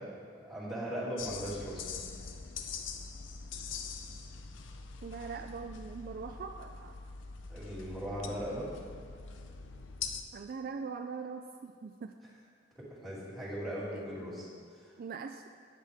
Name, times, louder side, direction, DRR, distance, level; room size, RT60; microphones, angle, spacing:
voice 1, 0.0-1.9 7.5-8.7 12.7-14.9, equal, ahead, -9 dB, 2.6 m, -39 dB
sound 1, 1.2-10.2, left 5 dB, 70° left, 0.6 m, -43 dB
voice 2, 5.0-7.0 10.3-12.1 13.9-14.0 15.0-15.5, right 5 dB, 50° right, 6 dB, 0.3 m, -42 dB
12.0 x 9.0 x 3.5 m, 2.1 s
head